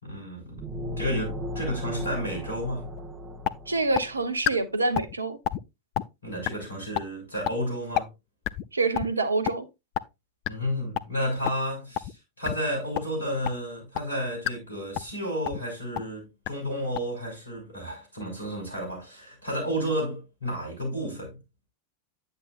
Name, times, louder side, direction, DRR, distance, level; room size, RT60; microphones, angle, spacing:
voice 1, 0.0-0.6 1.0-2.9 6.2-8.1 10.5-21.4, equal, 80° left, 5.4 m, -32 dB
sound 1, 0.6-4.3, left 1 dB, 15° right, 1.7 m, -36 dB
sound 2, 3.0-3.1 3.4-3.5 3.9-4.0 4.4-4.5 4.9-5.1 5.4-5.6 5.9-6.0 6.4-6.5 6.9-7.0 7.4-7.5 7.9-8.0 8.4-8.6 8.9-9.1 9.4-9.5 9.9-10.0 10.4-10.5 10.9-11.0 11.4-11.5 11.9-12.1 12.4-12.5 12.9-13.0 13.4-13.5 13.9-14.0 14.4-14.5 14.9-15.1 15.4-15.6 15.9-16.0 16.4-16.5 16.9-17.0, left 13 dB, 40° left, 0.5 m, -27 dB
voice 2, 3.7-5.4 8.7-9.7, right 3 dB, 80° right, 0.9 m, -26 dB
9.4 x 8.0 x 2.5 m
figure-of-eight pair, 90°, 0 cm